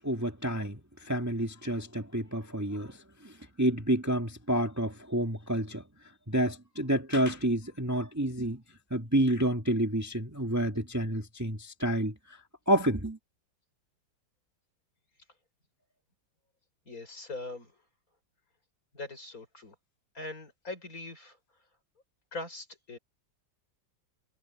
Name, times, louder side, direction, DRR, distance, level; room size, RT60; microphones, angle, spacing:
voice 1, 0.0-5.8 6.3-8.6 8.9-12.4 12.7-13.2, right 1 dB, 10° right, 1.9 m, -29 dB
voice 2, 16.9-17.7 18.9-19.7 20.1-21.4 22.3-23.0, left 2 dB, 45° left, 6.4 m, -41 dB
omnidirectional pair, 2.1 m